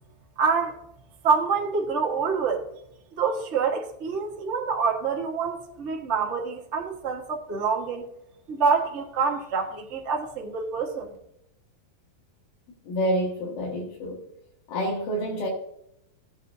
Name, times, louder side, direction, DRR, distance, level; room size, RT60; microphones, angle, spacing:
voice 1, 0.4-0.7 1.2-2.6 3.2-8.0 8.5-11.1, right 5 dB, 75° right, 0.6 m, -26 dB
voice 2, 12.9-14.2 14.7-15.5, equal, 70° left, 3.2 m, -28 dB
16.0 x 8.5 x 2.7 m
omnidirectional pair, 4.0 m